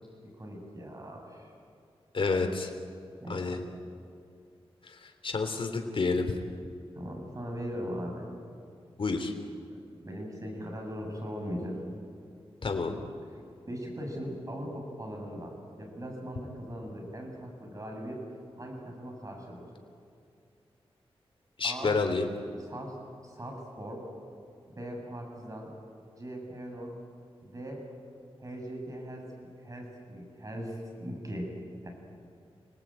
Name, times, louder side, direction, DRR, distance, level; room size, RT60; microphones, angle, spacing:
voice 1, 0.2-1.5 3.2-3.6 7.0-8.3 9.7-11.8 13.7-18.2 18.6-19.7 21.6-22.0 22.6-23.0 23.2-24.0 24.7-25.7 26.1-27.0 27.4-27.9 28.4-29.3 29.6-31.5 31.8-31.9, equal, 35° right, 1 dB, 7.9 m, -39 dB
voice 2, 2.1-2.7 3.3-3.6 4.9-6.3 9.0-9.3 12.6-13.0 21.6-22.3, left 4 dB, 60° left, 5 dB, 3.5 m, -29 dB
30.0 x 19.5 x 9.1 m, 2.4 s
wide cardioid pair, 75°, 10 cm